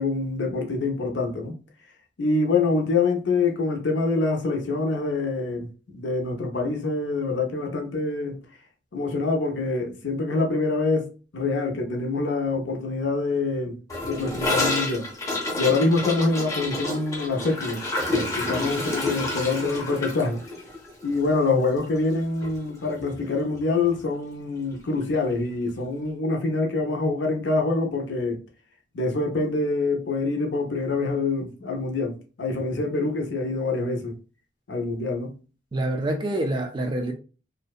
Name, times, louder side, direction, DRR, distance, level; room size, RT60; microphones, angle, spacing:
voice 1, 0.0-1.5 2.2-8.4 8.9-11.1 11.3-13.8 14.0-15.1 15.6-17.8 18.1-20.4 21.0-28.4 28.9-34.2 34.7-35.3, left 3 dB, 65° left, 0.6 m, -25 dB
Gurgling / Toilet flush, 13.9-22.2 22.4-22.6 22.8-23.3 23.6-23.7 24.0-24.1 25.0-25.1, left 2 dB, 15° left, 0.7 m, -29 dB
voice 2, 35.7-37.1, right 1 dB, 25° right, 0.3 m, -26 dB
2.6 x 2.1 x 2.3 m
head